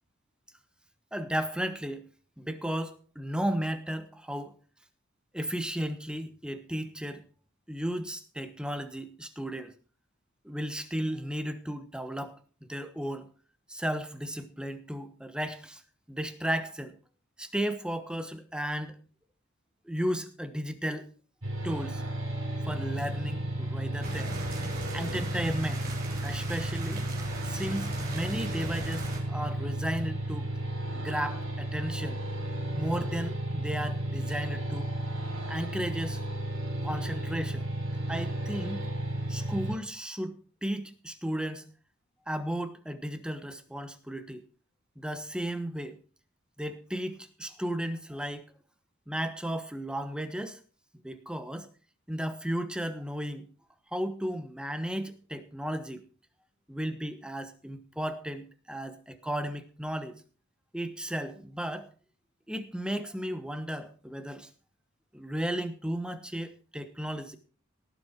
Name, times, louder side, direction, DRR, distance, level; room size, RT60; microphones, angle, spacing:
voice 1, 1.1-2.1 2.4-4.5 5.3-7.2 7.7-9.7 10.4-12.4 12.7-13.3 13.7-15.8 16.1-16.9 17.4-19.0 19.8-21.1 21.6-22.0 22.7-24.4 24.9-25.9 26.2-27.1 27.4-30.5 30.9-32.2 32.7-34.9 35.5-36.2 36.8-37.7 38.1-38.9 39.3-41.7 42.3-44.4 45.0-46.0 46.6-48.4 49.1-50.6 51.0-51.7 52.1-53.5 53.9-56.0 56.7-60.2 60.7-61.9 62.5-64.5 65.1-67.4, equal, 5° right, 10 dB, 1.2 m, -34 dB
sound 1, 21.4-39.8, right 1 dB, 70° right, 6.1 m, -33 dB
sound 2, 24.0-29.2, right 3 dB, 45° right, 4.3 m, -40 dB
18.0 x 7.8 x 4.6 m, 0.39 s
head